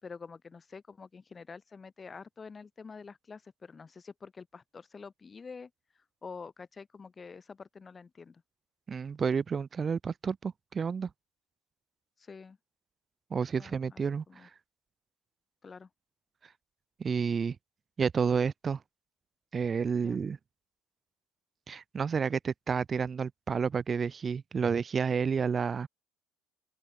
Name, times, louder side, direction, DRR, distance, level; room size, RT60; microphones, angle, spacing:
voice 1, 0.0-5.7 6.2-8.4 12.2-12.6 13.6-14.0 14.3-14.5 15.6-15.9 20.0-20.2, left 5 dB, 20° left, 3.8 m, -47 dB
voice 2, 8.9-11.1 13.3-14.5 17.0-17.6 18.0-18.8 19.5-20.4 21.7-25.9, right 6 dB, 25° right, 0.4 m, -30 dB
open air
cardioid pair, 145°, 0 cm